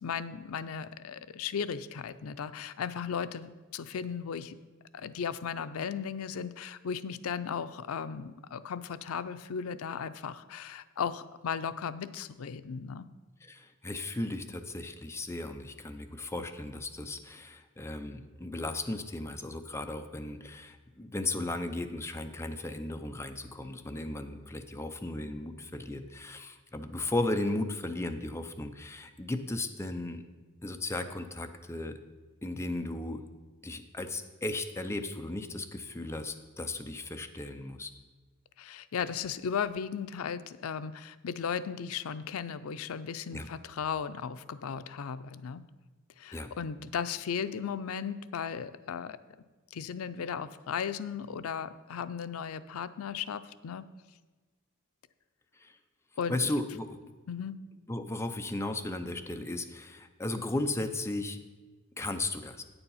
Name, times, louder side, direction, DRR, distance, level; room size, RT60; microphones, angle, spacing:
voice 1, 0.0-4.6 4.9-13.1 38.6-45.6 46.2-49.2 49.7-53.9 56.2-56.4 57.3-57.6, left 7 dB, 85° left, 13 dB, 0.5 m, -36 dB
voice 2, 13.4-30.2 30.6-32.0 32.4-33.3 33.6-37.9 43.3-43.5 46.3-46.5 55.6-55.8 56.3-57.0 57.9-61.4 62.0-62.6, left 2 dB, 15° left, 6 dB, 0.6 m, -35 dB
9.0 x 6.9 x 5.6 m, 1.3 s
head